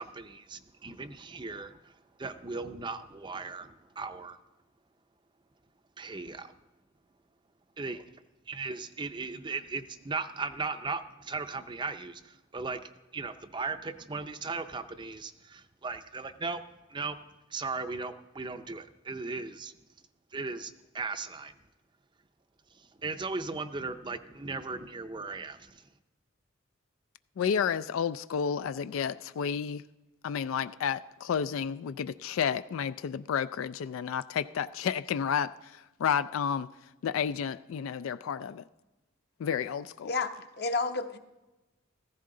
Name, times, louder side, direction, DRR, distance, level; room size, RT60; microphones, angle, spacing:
voice 1, 0.0-1.9 2.2-4.4 6.0-6.5 7.8-8.0 8.5-12.8 13.1-16.6 16.9-17.2 17.5-19.7 20.3-21.5 22.7-25.8, right 4 dB, 25° right, 0.5 m, -37 dB
voice 2, 27.4-29.8 30.2-36.7 37.0-38.6 39.4-40.1, left 7 dB, 80° left, 0.3 m, -31 dB
voice 3, 40.0-41.2, left 3 dB, 50° left, 0.9 m, -31 dB
15.0 x 14.5 x 3.8 m
head